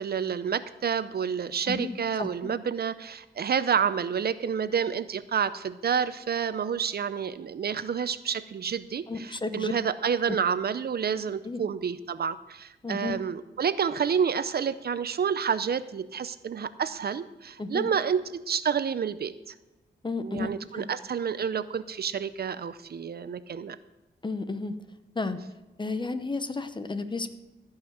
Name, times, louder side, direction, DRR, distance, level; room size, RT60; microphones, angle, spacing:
voice 1, 0.0-19.5 20.2-23.8, right 7 dB, 60° right, 14 dB, 0.6 m, -29 dB
voice 2, 1.7-2.5 9.1-9.7 10.3-10.4 11.4-11.6 12.8-13.2 17.6-17.9 20.0-20.9 24.2-24.7 25.1-25.4 25.8-27.3, left 3 dB, 25° left, 10 dB, 0.9 m, -32 dB
15.5 x 5.7 x 7.9 m, 1.0 s
wide cardioid pair, 105°, 18 cm